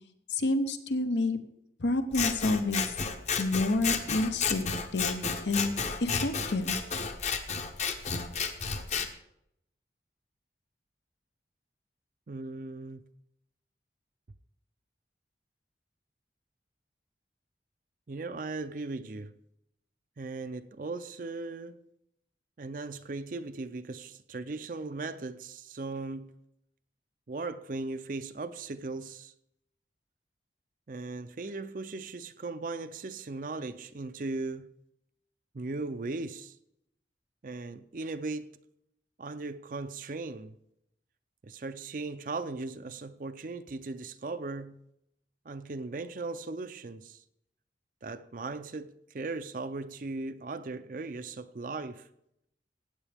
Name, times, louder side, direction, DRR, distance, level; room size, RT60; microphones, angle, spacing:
voice 1, 0.3-1.4 1.8-2.9 3.4-5.7 6.0-6.8, left 2 dB, 80° left, 0.9 m, -29 dB
Scissors, 2.1-9.1, left 5 dB, 40° left, 0.9 m, -32 dB
voice 2, 12.3-13.0 18.1-19.3 20.2-21.8 22.6-26.3 27.3-29.3 30.9-34.7 35.5-36.6 37.4-38.5 39.2-40.6 41.4-44.8 45.5-47.2 48.0-52.1, right 3 dB, 45° right, 0.5 m, -38 dB
16.0 x 9.0 x 3.5 m
head